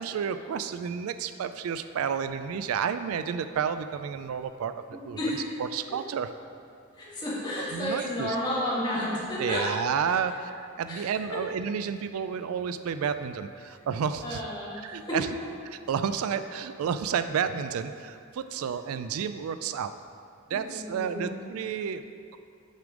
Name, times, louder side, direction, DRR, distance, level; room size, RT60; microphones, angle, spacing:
voice 1, 0.0-5.2 5.7-6.3 7.7-8.4 9.4-14.4 14.8-15.3 15.7-19.9 20.5-22.4, right 7 dB, 90° right, 11 dB, 0.3 m, -31 dB
voice 2, 4.9-5.5 6.9-9.6 10.9-11.4 14.2-15.2 20.5-21.3, left 1 dB, 20° left, -9 dB, 1.8 m, -32 dB
6.4 x 5.2 x 4.9 m, 2.3 s
head